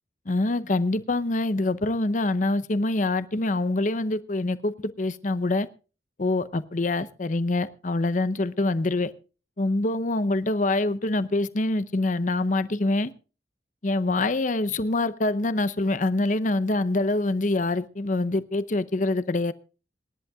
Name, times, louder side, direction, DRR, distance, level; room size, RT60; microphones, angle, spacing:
voice 1, 0.3-5.7 6.2-9.1 9.6-13.1 13.8-19.5, left 2 dB, 45° left, 0.7 m, -25 dB
26.5 x 11.0 x 2.3 m
head